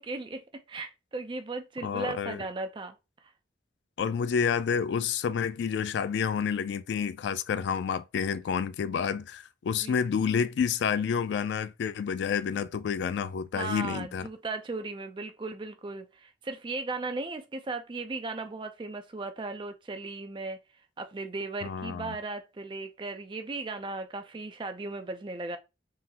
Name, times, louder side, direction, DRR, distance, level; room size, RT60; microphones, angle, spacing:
voice 1, 0.0-3.0 9.8-10.0 13.5-20.6 21.0-25.6, right 3 dB, 25° right, 0.4 m, -36 dB
voice 2, 1.8-2.4 4.0-14.3 21.6-22.2, left 7 dB, 80° left, 0.3 m, -29 dB
3.7 x 2.0 x 2.8 m
head